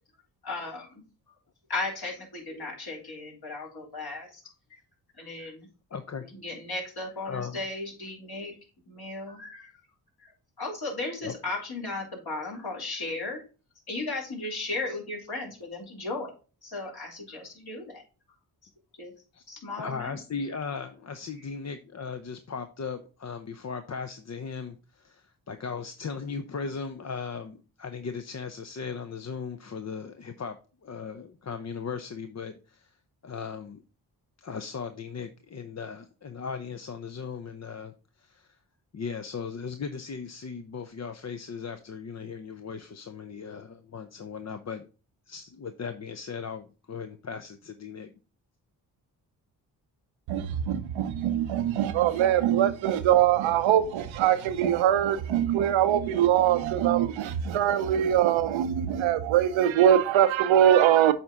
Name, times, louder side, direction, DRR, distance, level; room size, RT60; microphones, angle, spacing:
voice 1, 0.4-0.9 1.7-4.4 4.7-4.8 5.2-5.7 6.4-8.5 8.9-9.7 10.6-13.4 13.9-16.3 16.6-18.0 19.0-19.1 19.5-20.2, left 2 dB, 55° left, 3.5 m, -35 dB
voice 2, 5.9-6.2 7.3-7.6 11.2-11.4 19.3-19.4 19.8-33.0 33.2-33.8 34.4-38.6 38.9-44.9 45.3-48.1, left 5 dB, 35° left, 0.7 m, -37 dB
voice 3, 50.3-61.1, right 10 dB, 80° right, 0.8 m, -22 dB
7.7 x 4.3 x 3.7 m
supercardioid pair, 45°, 46 cm